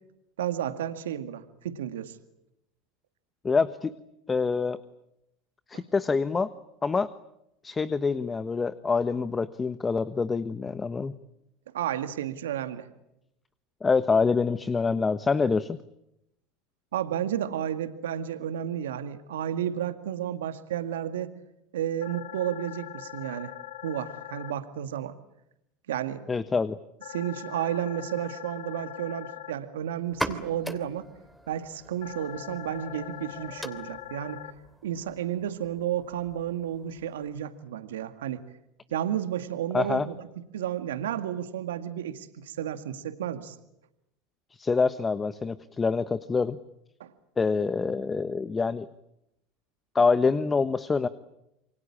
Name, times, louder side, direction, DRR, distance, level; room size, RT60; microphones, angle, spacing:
voice 1, 0.4-2.2 5.7-5.8 11.7-12.9 16.9-21.3 21.7-23.5 23.8-25.1 25.9-26.2 27.1-31.1 31.5-34.4 34.8-38.4 38.9-40.3 40.5-43.6 47.0-47.1, right 10 dB, 80° right, 10 dB, 2.0 m, -32 dB
voice 2, 3.4-3.9 4.3-4.8 5.7-6.5 6.8-7.1 7.6-11.1 13.8-15.8 26.3-26.8 39.7-40.1 44.5-46.6 47.4-48.9 49.9-51.1, left 4 dB, 20° left, 14 dB, 1.2 m, -26 dB
sound 1, 22.0-24.5 27.0-29.5 32.0-34.5, left 13 dB, 80° left, 1.9 m, -42 dB
sound 2, 30.0-37.5, equal, ahead, 3.0 m, -41 dB
28.5 x 24.0 x 8.7 m, 0.84 s
hypercardioid pair, 85°, 0 cm